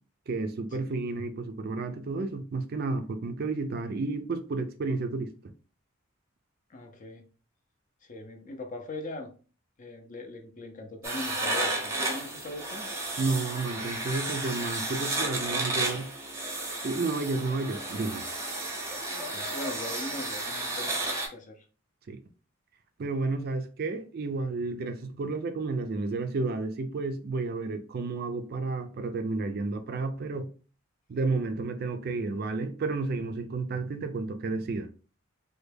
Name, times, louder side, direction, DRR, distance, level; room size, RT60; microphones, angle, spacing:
voice 1, 0.3-5.3 13.2-16.1 16.8-18.2 22.1-22.2 23.0-30.5 31.1-34.9, right 3 dB, 45° right, 0.3 m, -31 dB
voice 2, 6.7-7.2 8.0-9.3 9.8-13.0 19.1-21.7, left 2 dB, 40° left, 0.5 m, -40 dB
sound 1, 11.0-21.3, right 2 dB, 15° right, 0.7 m, -32 dB
3.2 x 2.2 x 3.3 m
head